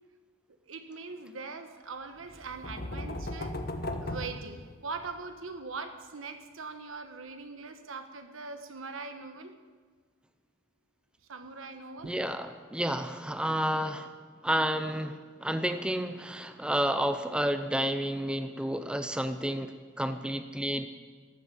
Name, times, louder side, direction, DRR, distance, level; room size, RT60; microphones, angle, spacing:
voice 1, 0.7-3.6 4.0-9.5 11.3-12.1, right 4 dB, 75° right, 8 dB, 1.2 m, -41 dB
sound 1, 2.3-5.2, left 1 dB, 50° left, 1.2 m, -37 dB
voice 2, 12.0-14.1 14.4-20.9, right 1 dB, 5° right, 9 dB, 0.5 m, -30 dB
14.0 x 11.0 x 6.9 m, 1.5 s
head